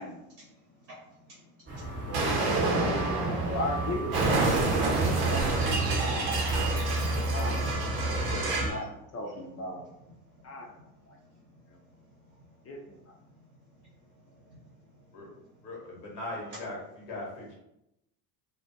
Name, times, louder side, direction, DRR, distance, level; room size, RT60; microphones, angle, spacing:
voice 1, 0.4-2.1 9.2-9.4 9.8-15.6, equal, 85° right, -6 dB, 1.0 m, -57 dB
sound 1, 1.7-8.7, right 2 dB, 25° right, 0.9 m, -32 dB
voice 2, 2.1-6.4 7.3-8.9 9.1-9.8 10.4-10.7 11.1-11.2 12.6-12.9, left 1 dB, 30° left, 0 dB, 0.5 m, -37 dB
Explosion, 2.1-8.8, right 3 dB, 50° right, 0.8 m, -29 dB
voice 3, 15.6-17.5, left 2 dB, 85° left, -2 dB, 1.0 m, -39 dB
2.3 x 2.3 x 2.6 m, 0.86 s
hypercardioid pair, 85°, 47 cm